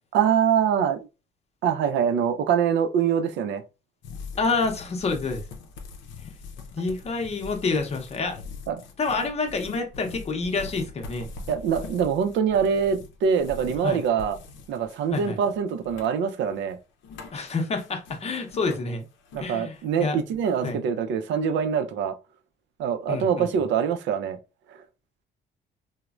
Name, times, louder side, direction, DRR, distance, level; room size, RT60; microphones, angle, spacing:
voice 1, 0.1-1.1 1.6-3.6 8.7-8.8 11.5-14.4 14.7-16.8 19.3-22.1 22.8-24.4 24.7-24.8, right 7 dB, 80° right, 0.4 m, -24 dB
sound 1, 4.0-19.5 19.7-20.7, left 4 dB, 90° left, 0.5 m, -43 dB
voice 2, 4.4-5.4 6.7-8.4 9.0-11.3 13.8-14.0 15.1-15.4 17.3-19.0 19.4-20.2 20.6-20.8 23.1-23.5, left 3 dB, 35° left, 0.6 m, -28 dB
3.0 x 2.0 x 2.3 m
cardioid pair, 105°, 19 cm